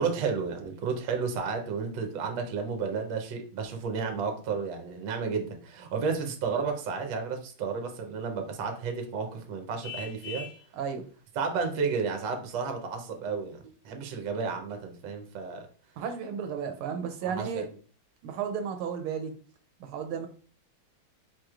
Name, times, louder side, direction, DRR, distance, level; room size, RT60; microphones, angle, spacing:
voice 1, 0.0-10.5 11.4-13.6 13.8-15.7 17.2-17.6, right 5 dB, 70° right, 4 dB, 1.4 m, -32 dB
Vehicle horn car horn honking, 9.8-10.7, left 6 dB, 75° left, 1.8 m, -40 dB
voice 2, 10.7-11.1 16.0-17.7 18.2-19.3 19.8-20.3, right 7 dB, 90° right, 6 dB, 1.5 m, -33 dB
4.7 x 3.0 x 2.4 m, 0.40 s
omnidirectional pair, 2.3 m